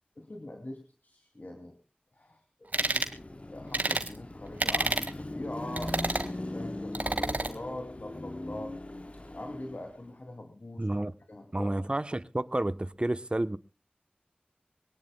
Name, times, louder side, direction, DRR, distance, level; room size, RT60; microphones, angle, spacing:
voice 1, 0.2-1.7 2.2-3.1 3.5-8.7 9.3-10.9 11.3-11.7, left 1 dB, 60° left, 2.6 m, -43 dB
sound 1, 2.7-3.1 3.7-4.1 4.6-5.1 5.8-6.3 6.9-7.5, right 2 dB, 60° right, 1.7 m, -29 dB
Car passing by / Traffic noise roadway noise / Engine, 2.8-10.1, left 1 dB, 40° left, 1.0 m, -40 dB
voice 2, 10.8-11.1 11.5-13.6, right 1 dB, 30° right, 0.8 m, -30 dB
24.0 x 18.5 x 2.2 m
wide cardioid pair, 50°, 3 cm